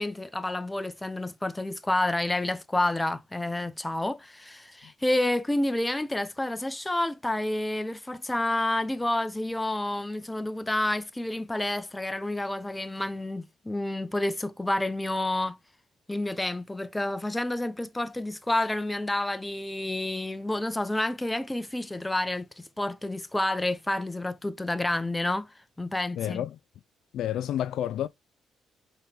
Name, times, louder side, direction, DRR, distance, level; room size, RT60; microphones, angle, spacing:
voice 1, 0.0-15.6 16.1-26.5, left 1 dB, 10° left, 0.8 m, -29 dB
voice 2, 26.2-26.5 27.1-28.1, left 11 dB, 80° left, 0.4 m, -29 dB
5.7 x 4.3 x 5.2 m
cardioid pair, 90°, 0 cm